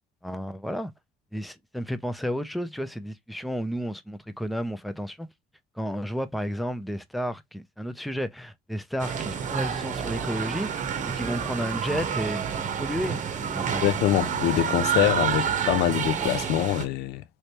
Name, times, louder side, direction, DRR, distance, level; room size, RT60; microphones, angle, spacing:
voice 1, 0.2-0.9 1.3-5.3 5.8-13.9, equal, ahead, 0.5 m, -32 dB
sound 1, 9.0-16.9, right 8 dB, 50° right, 0.9 m, -29 dB
voice 2, 13.8-17.2, left 13 dB, 80° left, 0.4 m, -24 dB
3.2 x 3.1 x 2.7 m
cardioid pair, 110°, 17 cm